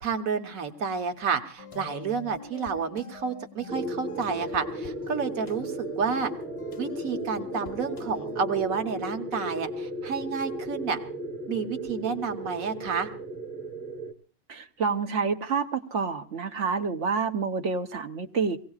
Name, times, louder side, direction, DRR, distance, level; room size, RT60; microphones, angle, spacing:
voice 1, 0.0-6.3 6.8-11.0 11.5-13.1, right 6 dB, 85° right, 5 dB, 1.6 m, -30 dB
sound 1, 1.6-8.6, left 5 dB, 35° left, 0.6 m, -45 dB
sound 2, 3.7-14.1, right 1 dB, 10° left, 0.9 m, -35 dB
voice 2, 14.5-18.6, right 5 dB, 60° right, 7 dB, 1.1 m, -28 dB
24.5 x 17.5 x 2.4 m, 0.39 s
omnidirectional pair, 1.4 m